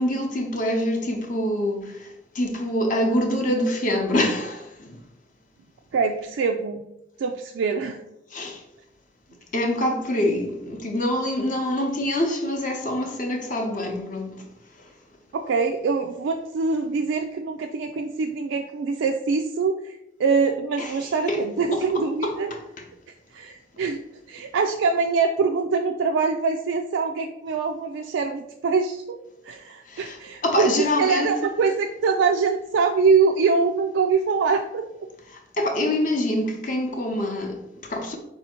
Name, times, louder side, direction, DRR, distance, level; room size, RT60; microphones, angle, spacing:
voice 1, 0.0-5.0 8.3-8.6 9.5-14.4 14.8-14.9 20.8-21.0 21.3-21.4 21.7-22.6 29.9-31.3 35.3-38.2, left 1 dB, 45° left, 0.6 m, -25 dB
voice 2, 5.9-6.8 7.2-8.0 15.3-22.5 23.3-24.0 24.3-29.2 29.4-34.9, right 5 dB, 85° right, 0.3 m, -24 dB
4.2 x 2.7 x 4.3 m
head